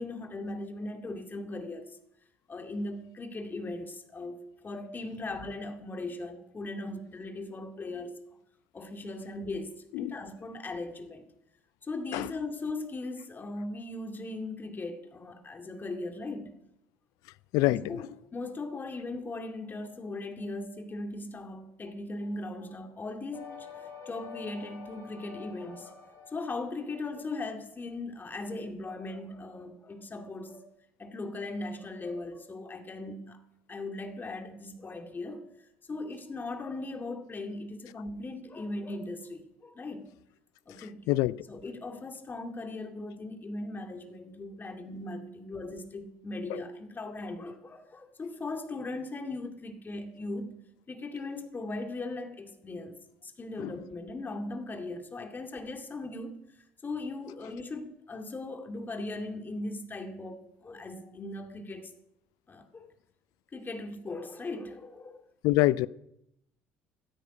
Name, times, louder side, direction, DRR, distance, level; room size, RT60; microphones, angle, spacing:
voice 1, 0.0-2.0 2.5-8.2 8.7-11.3 11.8-16.6 17.7-23.7 24.1-30.6 31.0-33.4 33.7-35.5 35.9-40.1 40.7-41.0 41.5-50.6 50.9-56.4 56.8-61.9 62.5-62.9 63.5-65.2, left 2 dB, 30° left, 2.3 m, -38 dB
voice 2, 17.5-18.0 41.1-41.4 46.5-46.6 53.6-53.7 65.4-65.9, left 18 dB, 70° left, 0.5 m, -25 dB
sound 1, 23.3-27.0, left 6 dB, 50° left, 5.6 m, -47 dB
16.5 x 13.0 x 5.1 m
hypercardioid pair, 60°, 6 cm